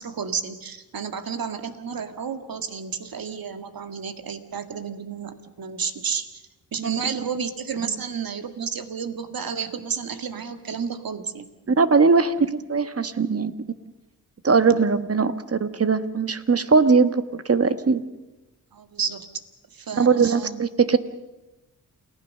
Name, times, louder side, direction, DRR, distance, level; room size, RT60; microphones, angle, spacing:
voice 1, 0.0-6.4 6.7-11.5 14.7-14.8 18.7-19.3 19.7-20.6, right 6 dB, 60° right, 9 dB, 1.9 m, -31 dB
voice 2, 11.7-13.5 14.4-18.0 20.0-21.0, right 5 dB, 35° right, 12 dB, 1.3 m, -20 dB
28.5 x 16.0 x 6.6 m, 1.0 s
cardioid pair, 60°, 40 cm